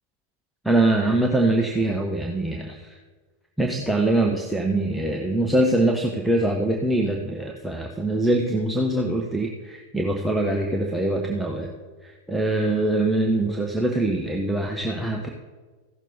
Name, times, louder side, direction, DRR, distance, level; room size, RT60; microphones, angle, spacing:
voice 1, 0.6-2.9 3.6-11.7 12.0-15.3, right 1 dB, ahead, 0 dB, 0.9 m, -23 dB
15.5 x 6.5 x 4.1 m, 1.4 s
figure-of-eight pair, 90°, 0 cm